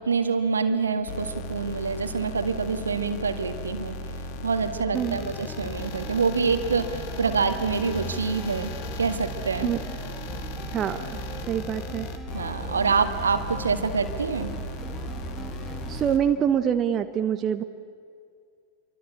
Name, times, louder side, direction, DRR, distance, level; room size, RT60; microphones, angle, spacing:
voice 1, 0.0-4.0 4.4-9.8 12.3-14.6, right 5 dB, 75° right, 8 dB, 1.8 m, -26 dB
sound 1, 1.1-16.2, left 1 dB, 50° left, 2.3 m, -36 dB
sound 2, 5.0-16.1, right 1 dB, 5° left, 1.9 m, -39 dB
voice 2, 11.5-12.1 15.9-17.6, right 9 dB, 30° right, 8 dB, 1.1 m, -25 dB
28.5 x 24.5 x 8.3 m, 2.2 s
figure-of-eight pair, 90°, 0 cm